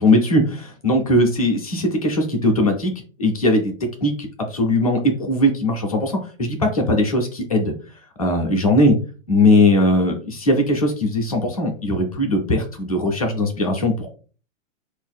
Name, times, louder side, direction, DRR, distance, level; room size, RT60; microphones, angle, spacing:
voice 1, 0.0-2.9 3.2-3.7 4.0-7.7 8.2-8.9 9.3-14.2, left 1 dB, 30° left, 2 dB, 0.4 m, -19 dB
3.9 x 2.5 x 2.3 m, 0.38 s
hypercardioid pair, 180°, 40 cm